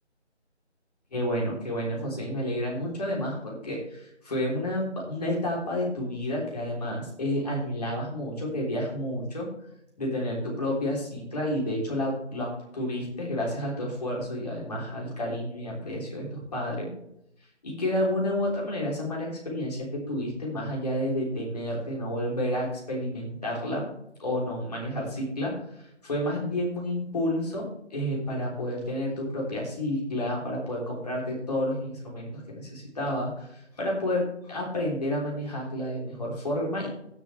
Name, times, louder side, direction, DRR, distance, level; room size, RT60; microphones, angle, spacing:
voice 1, 1.1-9.5 10.0-16.9 17.6-23.9 24.2-36.9, left 1 dB, 35° left, -2 dB, 3.4 m, -30 dB
16.5 x 7.3 x 3.3 m, 0.77 s
figure-of-eight pair, 165°, 35 cm